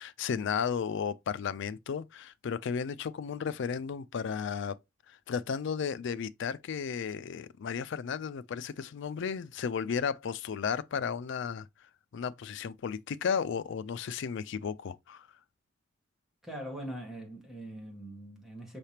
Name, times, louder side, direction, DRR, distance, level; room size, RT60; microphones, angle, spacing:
voice 1, 0.0-4.8 5.1-11.7 12.1-15.3, left 6 dB, 60° left, 0.4 m, -34 dB
voice 2, 16.4-18.8, right 1 dB, ahead, 1.3 m, -42 dB
5.6 x 3.4 x 2.8 m
head